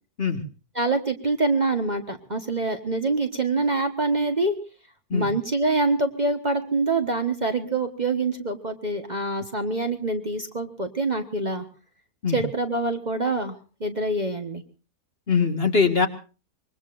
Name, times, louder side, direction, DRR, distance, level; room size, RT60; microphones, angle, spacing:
voice 1, 0.7-4.5 5.1-11.6 12.3-13.5 13.8-14.6, right 2 dB, 30° right, 6 dB, 1.3 m, -25 dB
voice 2, 15.3-16.1, left 5 dB, 40° left, 6 dB, 2.0 m, -22 dB
25.0 x 22.0 x 2.6 m, 0.35 s
omnidirectional pair, 1.6 m